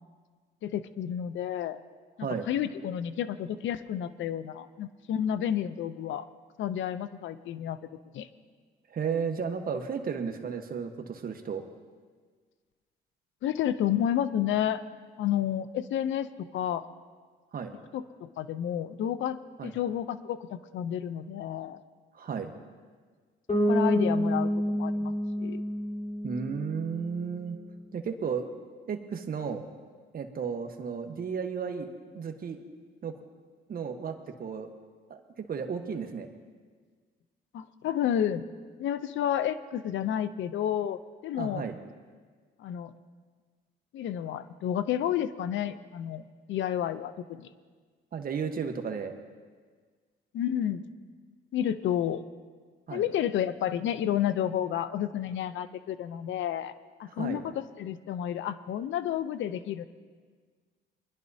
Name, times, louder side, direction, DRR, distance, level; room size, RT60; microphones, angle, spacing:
voice 1, 0.6-1.8 2.2-6.3 6.6-7.8 8.1-8.3 13.4-14.8 15.2-16.9 17.9-21.8 23.7-25.1 25.4-25.6 37.5-38.4 38.8-41.7 42.6-42.9 43.9-46.2 46.5-47.5 50.3-50.8 51.5-52.2 52.9-56.7 57.0-59.8, left 10 dB, 75° left, 13 dB, 0.6 m, -31 dB
voice 2, 8.9-11.6 17.5-17.7 19.6-19.7 22.1-22.5 26.2-27.6 27.9-28.5 28.9-29.6 30.1-31.9 32.1-32.6 33.0-33.1 33.7-34.7 35.1-36.3 41.4-41.8 48.1-49.1 52.9-53.0 57.2-57.4, right 6 dB, 45° right, 5 dB, 1.2 m, -33 dB
Bass guitar, 23.5-27.3, equal, 30° left, 3.6 m, -28 dB
24.0 x 10.5 x 2.7 m, 1.5 s
cardioid pair, 90°, 20 cm